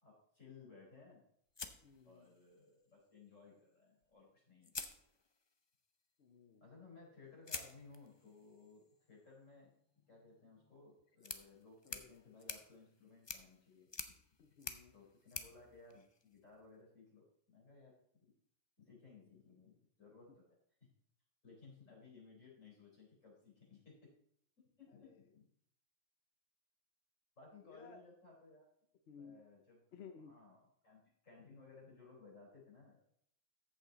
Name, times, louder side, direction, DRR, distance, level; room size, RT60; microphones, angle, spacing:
voice 1, 0.0-1.2 2.0-4.8 6.6-8.8 9.1-9.7 10.0-14.1 14.9-18.3 18.8-20.6 21.4-24.1 24.8-25.5 27.4-28.7 29.2-33.0, left 4 dB, 75° left, -3 dB, 4.8 m, -60 dB
sound 1, 1.5-2.7 4.0-4.1 4.6-5.6 7.4-16.6, left 4 dB, 30° left, 0.5 m, -50 dB
voice 2, 1.8-2.3 6.2-6.6 11.8-12.3 14.4-14.9 24.9-25.2 27.6-28.0 29.1-29.4 29.9-30.3, left 6 dB, 60° left, 6 dB, 0.9 m, -57 dB
14.0 x 5.6 x 4.0 m, 0.67 s
omnidirectional pair, 1.3 m